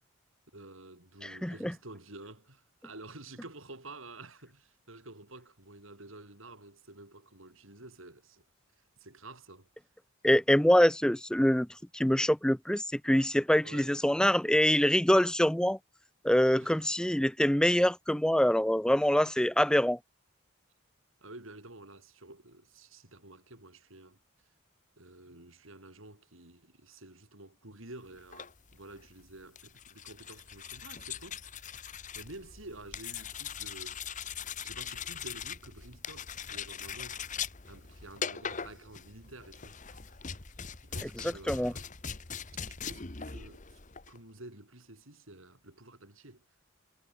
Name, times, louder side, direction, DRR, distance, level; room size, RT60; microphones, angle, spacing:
voice 1, 0.5-8.4 9.0-9.7 13.6-14.0 16.6-16.8 21.2-24.2 25.0-31.4 31.7-34.2 34.6-40.3 40.8-41.9 42.7-43.8 44.1-46.4, right 2 dB, 70° right, 5.6 m, -50 dB
voice 2, 1.2-1.7 10.2-11.7 11.9-15.8 16.2-20.0 41.5-41.7, equal, 5° left, 0.5 m, -25 dB
sound 1, 28.2-44.2, left 7 dB, 35° left, 1.4 m, -41 dB
head